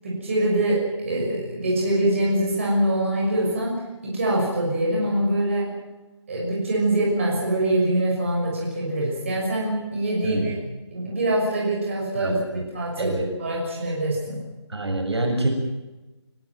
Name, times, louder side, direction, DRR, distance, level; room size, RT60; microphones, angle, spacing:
voice 1, 0.0-3.7 4.0-5.7 6.3-10.5 10.9-14.4, right 1 dB, 25° right, -3 dB, 6.3 m, -24 dB
voice 2, 10.2-10.6 12.1-12.6 13.0-13.2 14.7-15.5, right 2 dB, 60° right, 3 dB, 6.7 m, -26 dB
29.5 x 12.5 x 9.3 m, 1.1 s
figure-of-eight pair, 175°, 15 cm